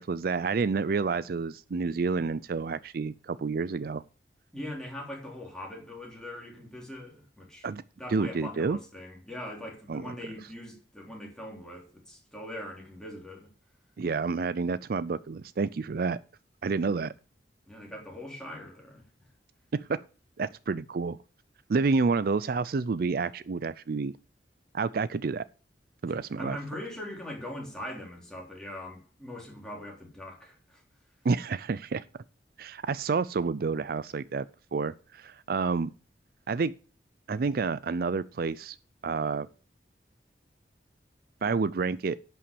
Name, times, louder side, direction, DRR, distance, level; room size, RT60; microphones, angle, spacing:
voice 1, 0.0-4.0 7.6-7.8 8.1-8.8 9.9-10.0 14.0-16.2 16.6-17.1 19.7-20.0 20.4-21.2 21.7-24.1 24.7-25.4 26.0-26.6 31.2-32.0 32.6-34.5 34.7-35.9 36.5-36.7 37.3-38.8 39.0-39.5 41.4-42.2, right 4 dB, 55° right, 0.4 m, -29 dB
voice 2, 4.5-7.7 8.0-13.5 17.7-19.1 26.1-30.8, left 1 dB, 5° left, 3.6 m, -41 dB
11.0 x 5.8 x 6.9 m
head